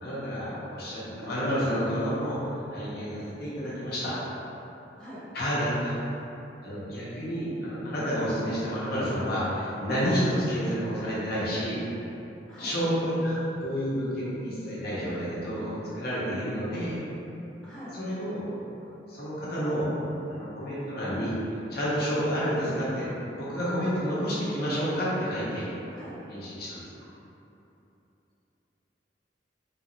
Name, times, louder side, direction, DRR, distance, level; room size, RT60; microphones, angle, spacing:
voice 1, 0.0-4.1 5.3-5.9 6.6-11.8 12.6-17.0 17.9-18.5 19.1-19.9 20.3-21.4 21.7-23.1 23.3-25.7 26.3-26.8, equal, 60° left, -9 dB, 0.9 m, -29 dB
voice 2, 17.6-17.9 25.9-26.2, equal, 5° left, -11 dB, 0.8 m, -44 dB
3.3 x 2.5 x 3.0 m, 3.0 s
head